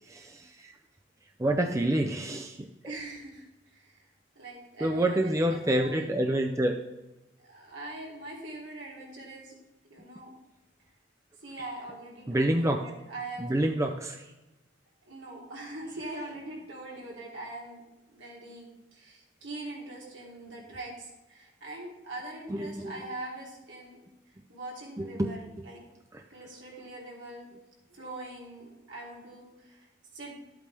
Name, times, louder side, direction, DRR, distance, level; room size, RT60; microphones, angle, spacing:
voice 1, 0.0-0.7 1.4-2.7 4.8-6.8 12.3-12.8 13.4-14.3 22.5-23.0 25.0-25.7 26.1-26.2, right 1 dB, 15° right, 4 dB, 0.5 m, -28 dB
voice 2, 2.8-3.5 3.7-4.0 4.3-6.1 7.4-9.5 9.9-10.3 11.4-13.5 15.1-17.8 18.1-24.0 24.5-25.8 26.3-27.5 27.9-29.9 30.1-30.4, right 2 dB, 65° right, -3 dB, 3.1 m, -42 dB
12.0 x 8.2 x 3.4 m, 1.0 s
head